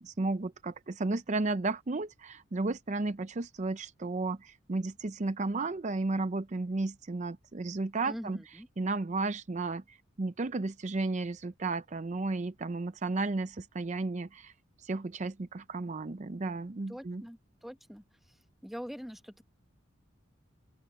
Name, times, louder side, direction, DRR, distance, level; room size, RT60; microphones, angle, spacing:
voice 1, 0.0-8.4 8.8-14.5 14.8-17.2, right 3 dB, 40° right, 0.6 m, -33 dB
voice 2, 8.1-8.7 16.9-18.0 18.6-19.4, equal, ahead, 1.0 m, -43 dB
open air
head